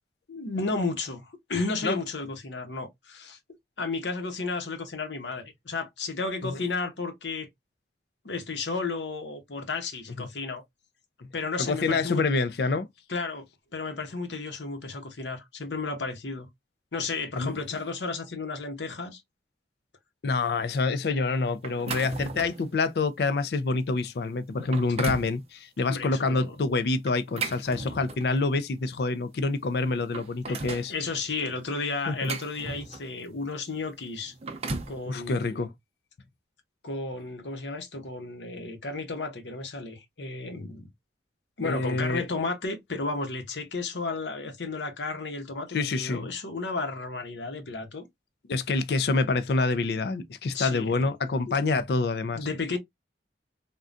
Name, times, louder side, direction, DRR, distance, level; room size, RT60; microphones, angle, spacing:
voice 1, 0.3-3.4 3.8-7.5 8.2-10.6 11.3-12.2 13.1-13.5 13.7-16.5 16.9-19.2 25.8-26.6 27.4-27.5 27.8-28.0 30.5-30.6 30.9-34.3 34.9-35.7 36.8-40.9 41.6-48.1 50.5-51.1 51.5-51.6 52.3-52.8, left 3 dB, 85° left, 0.9 m, -33 dB
voice 2, 11.6-12.9 17.4-17.5 20.2-30.9 32.1-32.3 35.1-35.7 41.6-42.3 45.7-46.3 48.5-52.5, left 3 dB, 65° left, 0.4 m, -27 dB
sound 1, 21.6-22.7 23.2-23.4 24.0-24.1 24.5-25.4 27.1-28.4 29.4-29.5 29.9-30.9 31.8-33.2 34.2-35.0, right 3 dB, 35° right, 0.5 m, -36 dB
3.6 x 2.2 x 2.5 m
head